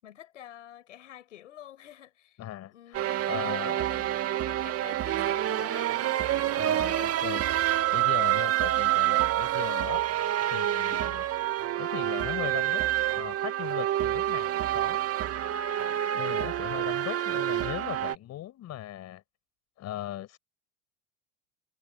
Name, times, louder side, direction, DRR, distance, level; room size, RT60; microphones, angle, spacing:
voice 1, 0.0-2.4 2.7-6.2 8.3-8.6 11.1-11.2 16.5-16.8, left 11 dB, 90° left, 6.5 m, -49 dB
voice 2, 2.4-3.8 6.6-10.0 10.5-11.3 11.8-12.8 13.1-15.0 16.1-19.2 19.8-20.4, left 13 dB, 45° left, 6.4 m, -38 dB
sound 1, 2.9-18.2, right 13 dB, 40° right, 2.3 m, -27 dB
hypercardioid pair, 95°, 36 cm